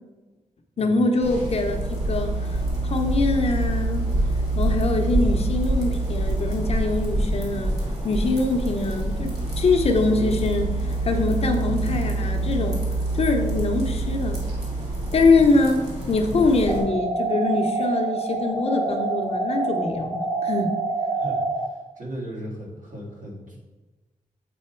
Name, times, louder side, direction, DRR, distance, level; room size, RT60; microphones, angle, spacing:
voice 1, 0.8-2.6 2.8-4.1 4.6-7.8 8.0-12.8 13.1-14.4 15.1-20.7, left 3 dB, 45° left, 4 dB, 0.7 m, -23 dB
sound 1, 1.2-16.8, right 2 dB, 50° right, 2.2 m, -26 dB
sound 2, 16.7-21.7, right 3 dB, 10° right, 0.8 m, -26 dB
voice 2, 21.1-23.6, equal, 70° right, -3 dB, 1.9 m, -37 dB
7.7 x 4.2 x 4.4 m, 1.2 s
wide cardioid pair, 150°, 14 cm